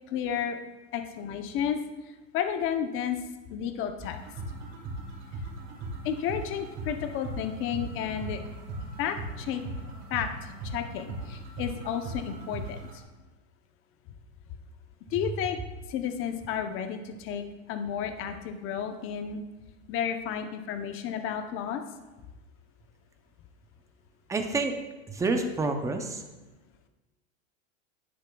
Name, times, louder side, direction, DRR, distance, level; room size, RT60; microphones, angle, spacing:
voice 1, 0.1-0.6 0.9-1.8 2.3-3.2 3.5-4.2 6.0-8.4 9.0-9.6 10.1-12.8 15.1-15.6 15.9-19.4 19.9-21.8, left 8 dB, 35° left, 7 dB, 0.7 m, -32 dB
sound 1, 4.0-13.0, right 2 dB, 30° right, 2.5 m, -39 dB
voice 2, 24.3-24.8 25.1-26.2, right 3 dB, 10° right, 5 dB, 0.5 m, -28 dB
10.5 x 9.6 x 2.3 m, 1.1 s
supercardioid pair, 140°, 38 cm